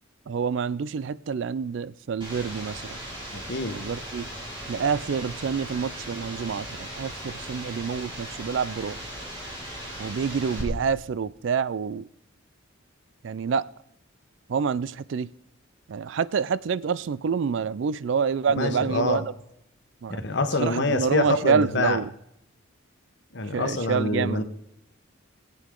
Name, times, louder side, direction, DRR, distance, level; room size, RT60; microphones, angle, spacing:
voice 1, 0.3-3.0 3.7-4.3 4.7-9.0 10.0-12.1 13.2-13.7 14.5-15.3 15.9-19.2 20.0-20.2 20.6-22.1 23.5-24.4, right 6 dB, 60° right, 19 dB, 0.3 m, -27 dB
sound 1, 2.2-10.6, equal, 25° right, 4.0 m, -38 dB
voice 2, 3.3-3.8 18.6-19.2 20.1-22.0 23.3-24.4, left 2 dB, 55° left, 8 dB, 1.1 m, -26 dB
19.0 x 8.4 x 3.8 m, 0.79 s
head